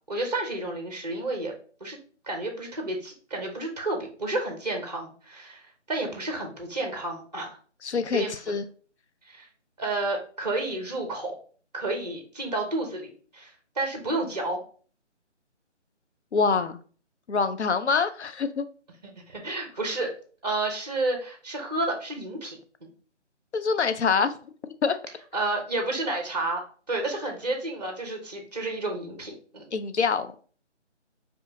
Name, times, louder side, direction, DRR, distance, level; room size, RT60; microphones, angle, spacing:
voice 1, 0.1-1.5 1.8-2.0 2.2-7.5 8.1-8.3 9.3-9.5 9.8-11.4 11.7-14.6 19.0-20.1 20.4-22.9 25.3-26.6 26.9-29.7, right 2 dB, 35° right, 3 dB, 0.8 m, -31 dB
voice 2, 7.8-8.7 16.3-16.8 17.3-18.6 23.5-24.4 24.8-25.0 29.7-30.5, left 5 dB, 70° left, 10 dB, 0.5 m, -25 dB
4.9 x 2.4 x 2.7 m, 0.43 s
figure-of-eight pair, 155°, 36 cm